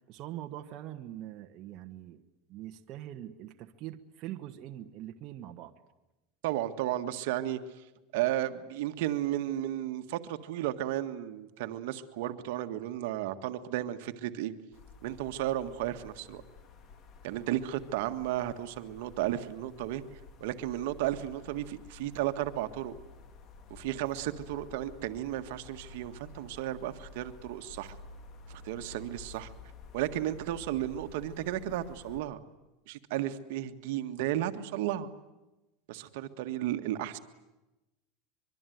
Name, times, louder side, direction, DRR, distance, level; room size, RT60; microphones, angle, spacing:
voice 1, 0.0-2.2 2.5-5.7, right 12 dB, 40° right, 1.4 m, -43 dB
voice 2, 6.4-7.9 8.1-14.5 15.0-16.4 17.2-20.0 20.4-22.9 23.7-27.9 28.5-29.5 29.9-32.4 32.9-35.1 35.9-37.2, right 13 dB, 70° right, 1.7 m, -34 dB
sound 1, 14.7-32.2, left 3 dB, 35° left, 2.2 m, -51 dB
24.5 x 23.5 x 9.4 m
supercardioid pair, 160°, 0 cm